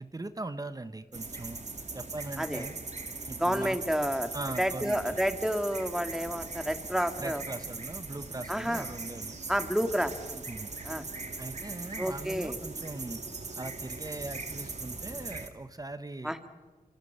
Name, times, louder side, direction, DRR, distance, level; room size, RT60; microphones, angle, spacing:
voice 1, 0.0-1.6 1.9-2.7 3.3-3.8 4.3-5.2 7.2-9.4 10.5-10.7 11.4-13.2 13.6-16.3, right 2 dB, 25° right, 12 dB, 1.0 m, -40 dB
sound 1, 1.1-15.5, right 3 dB, 45° right, 2.5 m, -40 dB
voice 2, 3.4-4.3 4.6-7.4 8.5-8.8 9.5-10.4 10.9-11.0 12.0-12.6 16.2-16.4, equal, 5° right, 8 dB, 1.9 m, -30 dB
28.5 x 26.0 x 5.7 m, 1.4 s
wide cardioid pair, 85°, 16 cm